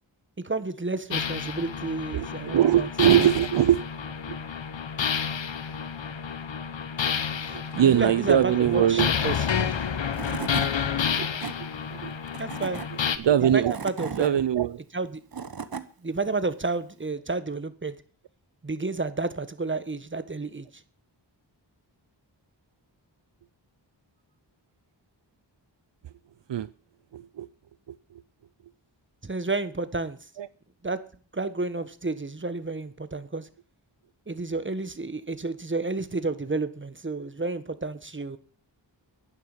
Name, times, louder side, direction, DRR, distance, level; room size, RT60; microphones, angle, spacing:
voice 1, 0.4-2.9 7.4-9.7 12.4-12.8 13.4-14.4 14.9-15.2 16.0-17.9 18.6-20.8 29.2-30.2 30.8-31.0 31.3-33.5 34.3-38.4, right 3 dB, 25° right, 1.4 m, -31 dB
sound 1, 1.1-13.2, left 7 dB, 90° left, 1.1 m, -30 dB
voice 2, 2.1-3.8 4.3-4.4 7.7-9.1 10.4-10.5 11.2-11.3 11.9-12.1 13.2-13.7 14.2-14.8 26.5-26.7 27.1-27.5 30.4-30.5, right 10 dB, 75° right, 0.6 m, -22 dB
Tools / Wood, 9.8-9.9 10.1-10.7 11.2-11.5 12.3-12.9 13.5-14.3 15.0-15.8, right 6 dB, 55° right, 1.2 m, -35 dB
11.0 x 9.6 x 8.9 m
wide cardioid pair, 70°, 44 cm